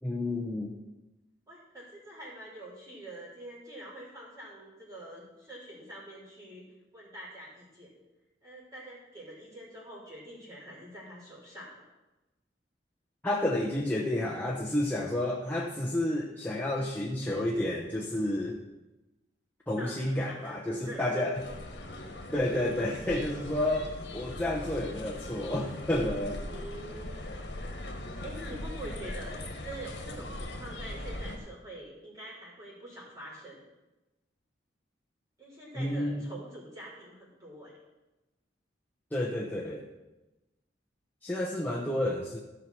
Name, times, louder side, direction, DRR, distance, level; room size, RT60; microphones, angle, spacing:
voice 1, 0.0-0.8 13.2-18.6 19.7-21.5 22.3-26.4 35.7-36.3 39.1-39.9 41.2-42.4, left 1 dB, 10° left, -4 dB, 0.9 m, -30 dB
voice 2, 1.5-6.6 6.9-7.9 8.4-11.8 19.8-20.6 20.8-21.3 26.5-27.5 28.2-33.6 35.4-37.7, right 1 dB, 20° right, -9 dB, 4.0 m, -45 dB
sound 1, 21.3-31.4, left 1 dB, 70° left, 1.6 m, -40 dB
14.0 x 5.7 x 6.1 m, 1.0 s
head